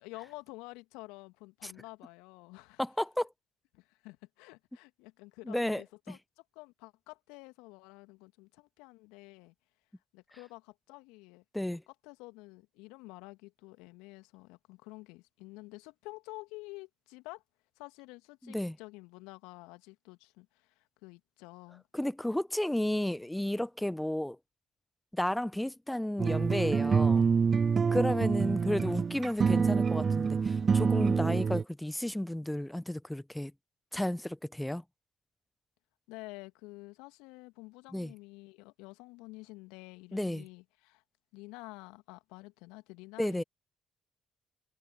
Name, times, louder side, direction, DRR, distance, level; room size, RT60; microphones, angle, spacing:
voice 1, 0.0-2.8 3.7-6.2 6.5-9.5 10.1-11.4 11.9-17.4 17.8-21.8 36.1-41.0 41.3-43.4, left 24 dB, 75° left, 2.2 m, -49 dB
voice 2, 2.8-3.3 5.5-6.2 11.5-11.8 18.4-18.8 21.9-24.4 25.1-27.3 27.9-33.5 33.9-34.8 37.9-38.1 40.1-40.4 43.2-43.4, left 1 dB, 5° left, 1.0 m, -32 dB
sound 1, 26.2-31.6, right 5 dB, 40° right, 0.5 m, -26 dB
figure-of-eight pair, 45°, 0 cm